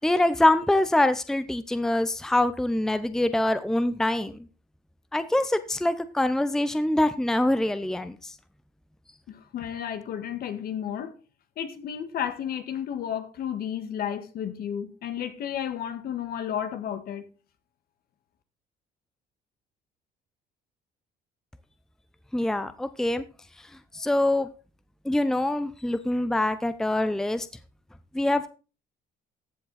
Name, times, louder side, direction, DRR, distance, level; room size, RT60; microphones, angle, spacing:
voice 1, 0.0-4.4 5.1-8.3 22.3-23.2 23.9-24.5 25.0-27.5 28.1-28.5, left 1 dB, 5° left, 0.7 m, -24 dB
voice 2, 9.3-11.1 11.6-17.3, left 9 dB, 65° left, 1.8 m, -32 dB
14.5 x 7.5 x 4.1 m
cardioid pair, 110°, 17 cm